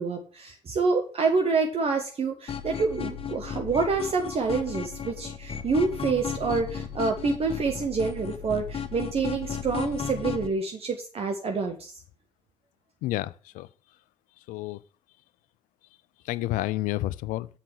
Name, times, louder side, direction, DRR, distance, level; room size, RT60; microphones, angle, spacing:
voice 1, 0.0-11.9, right 4 dB, 40° right, 1.2 m, -27 dB
sound 1, 2.5-10.5, left 7 dB, 40° left, 1.1 m, -35 dB
voice 2, 13.0-13.7 14.5-14.8 16.3-17.5, left 16 dB, 60° left, 0.4 m, -30 dB
7.7 x 5.0 x 7.1 m
figure-of-eight pair, 40°, 15 cm